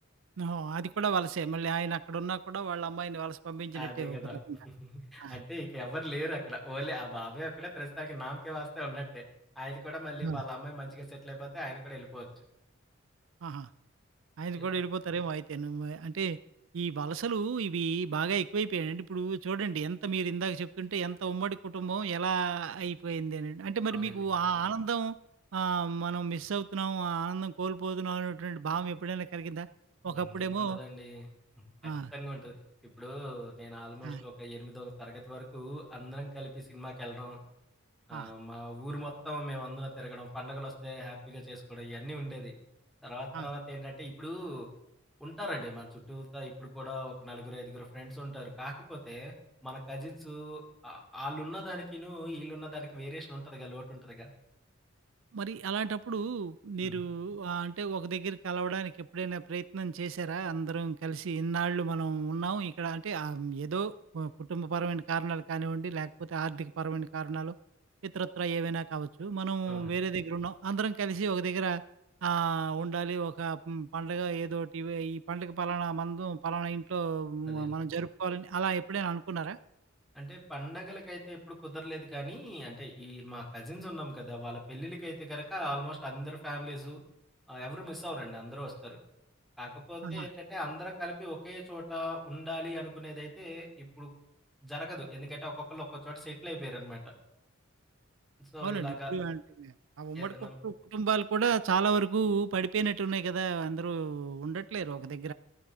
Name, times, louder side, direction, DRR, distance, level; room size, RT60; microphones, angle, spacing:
voice 1, 0.4-4.6 5.2-5.4 10.2-10.4 13.4-13.7 14.4-16.4 16.7-25.1 25.5-29.7 30.0-30.8 31.8-32.1 34.0-34.2 38.1-38.3 43.3-43.5 55.3-67.5 68.0-71.8 72.2-79.6 90.0-90.3 98.6-105.3, right 5 dB, 65° right, 16 dB, 0.4 m, -33 dB
voice 2, 3.7-4.4 4.6-9.2 9.6-12.3 14.6-14.8 23.9-24.3 30.0-31.3 31.6-32.5 32.8-37.4 38.1-42.5 43.0-44.7 45.2-49.3 49.6-54.3 56.8-57.0 69.7-70.0 77.4-77.8 80.1-87.0 87.5-89.0 89.6-94.1 94.6-97.1 98.4-99.1 100.1-100.5, equal, ahead, -1 dB, 2.6 m, -40 dB
14.5 x 11.5 x 3.6 m, 0.85 s
head